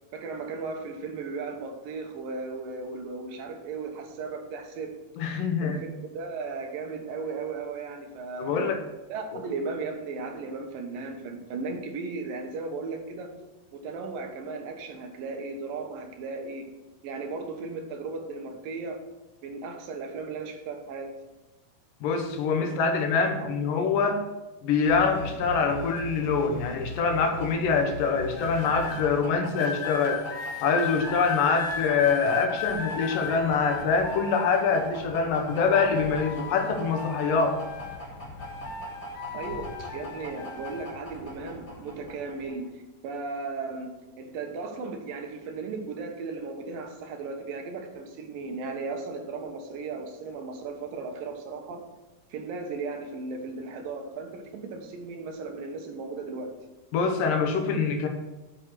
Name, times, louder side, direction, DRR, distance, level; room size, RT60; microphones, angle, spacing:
voice 1, 0.1-4.9 5.6-5.8 6.1-8.7 9.1-13.3 13.7-16.7 17.0-19.0 19.4-21.1 22.6-22.7 23.2-23.6 39.3-51.8 52.3-56.5, right 4 dB, 80° right, 4 dB, 3.0 m, -36 dB
voice 2, 5.2-5.8 8.4-8.8 22.0-24.3 24.6-30.2 30.6-37.6 56.9-58.1, left 5 dB, 75° left, 5 dB, 2.8 m, -25 dB
sound 1, 24.9-29.3, left 1 dB, 40° left, 1.4 m, -39 dB
sound 2, 26.9-42.7, left 1 dB, 20° left, 3.1 m, -43 dB
sound 3, 28.3-29.0 29.6-35.1 35.5-38.1 38.4-40.9 41.7-42.0, left 5 dB, 55° left, 2.2 m, -36 dB
8.3 x 7.5 x 6.2 m, 1.1 s
omnidirectional pair, 3.9 m